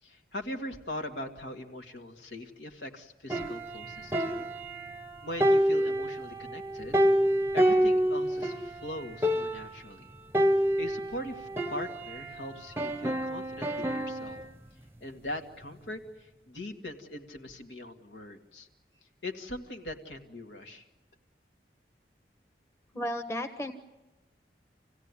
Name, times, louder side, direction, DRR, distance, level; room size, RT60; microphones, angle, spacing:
voice 1, 0.0-4.5 5.2-7.0 7.5-10.1 10.8-14.4 15.0-18.7 19.2-20.9, left 1 dB, 85° left, 4 dB, 2.0 m, -41 dB
sound 1, 3.3-5.1 5.4-8.7 9.0-9.1 9.2-9.8 10.3-12.3 12.8-14.4, equal, 15° right, 0.8 m, -27 dB
voice 2, 22.9-23.7, left 1 dB, 15° left, 7 dB, 1.3 m, -33 dB
27.0 x 16.5 x 9.8 m, 1.0 s
head